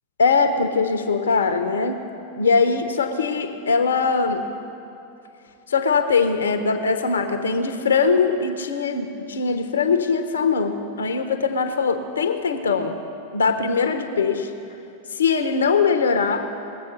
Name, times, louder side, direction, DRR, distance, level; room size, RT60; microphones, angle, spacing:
voice 1, 0.2-2.0 2.4-4.4 5.7-13.0 13.3-14.5 15.1-16.6, left 5 dB, 70° left, 7 dB, 1.0 m, -21 dB
20.0 x 7.9 x 6.6 m, 2.7 s
figure-of-eight pair, 90°, 0 cm